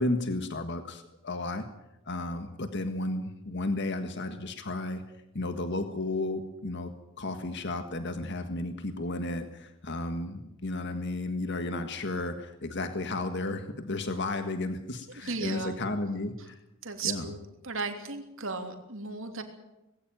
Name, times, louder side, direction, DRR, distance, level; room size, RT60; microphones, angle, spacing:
voice 1, 0.0-1.7 2.1-5.0 5.3-6.9 7.2-16.6 17.0-17.3, left 2 dB, 55° left, 8 dB, 1.7 m, -33 dB
voice 2, 15.1-15.8 16.8-17.4 17.6-19.4, right 4 dB, 65° right, 5 dB, 3.2 m, -35 dB
20.0 x 16.5 x 9.2 m, 0.91 s
head